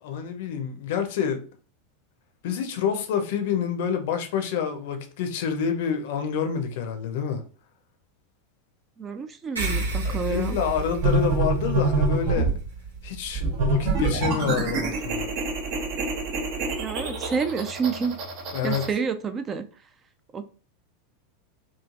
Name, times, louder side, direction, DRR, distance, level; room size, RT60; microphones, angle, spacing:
voice 1, 0.0-1.4 2.4-7.4 10.0-12.5 13.0-15.3 18.5-18.8, left 7 dB, 60° left, 0.5 m, -28 dB
voice 2, 9.0-10.6 16.8-18.2 18.6-19.6 20.3-20.5, right 5 dB, 25° right, 0.3 m, -29 dB
sound 1, 9.6-14.4, right 2 dB, 85° right, 1.0 m, -32 dB
sound 2, 11.0-12.6 13.3-18.9, right 3 dB, 50° right, 0.7 m, -26 dB
3.0 x 2.4 x 2.4 m
figure-of-eight pair, 85°, 0 cm